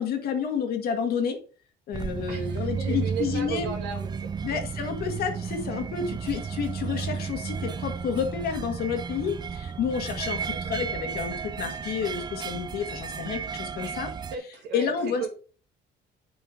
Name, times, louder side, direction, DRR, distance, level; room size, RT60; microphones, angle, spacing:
voice 1, 0.0-1.4 1.9-3.7 4.4-14.1 14.7-15.3, left 6 dB, 65° left, 5 dB, 1.8 m, -30 dB
sound 1, 1.9-14.4, right 6 dB, 25° right, 0.4 m, -33 dB
voice 2, 2.3-4.3 10.4-10.8 13.8-15.3, right 6 dB, 85° right, 2 dB, 2.2 m, -36 dB
7.9 x 4.6 x 3.7 m, 0.39 s
cardioid pair, 110°, 17 cm